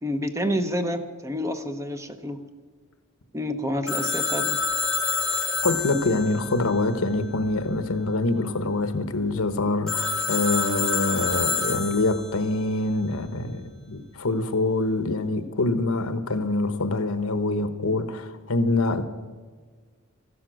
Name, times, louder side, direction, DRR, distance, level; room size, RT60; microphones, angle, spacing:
voice 1, 0.0-2.4 3.3-4.6, equal, 15° right, 8 dB, 0.9 m, -28 dB
Telephone, 3.9-7.5 9.9-12.4, left 4 dB, ahead, 3.1 m, -27 dB
voice 2, 5.6-19.1, left 2 dB, 70° left, 11 dB, 1.0 m, -25 dB
14.5 x 12.5 x 6.3 m, 1.5 s
head